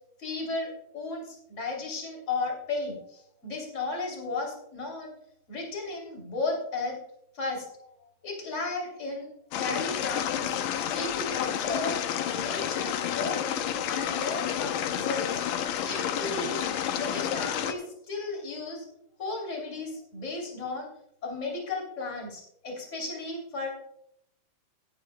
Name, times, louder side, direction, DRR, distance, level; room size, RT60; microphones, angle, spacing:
voice 1, 0.2-3.0 3.4-5.1 5.5-6.9 7.3-7.8 8.2-9.3 9.5-10.5 10.9-12.0 12.3-15.4 15.8-16.6 16.9-17.8 18.1-18.8 19.2-20.9 21.2-23.7, left 3 dB, 20° left, 0 dB, 3.2 m, -34 dB
sound 1, 9.5-17.7, left 10 dB, 75° left, 1.7 m, -30 dB
16.5 x 11.0 x 2.2 m, 0.74 s
omnidirectional pair, 3.9 m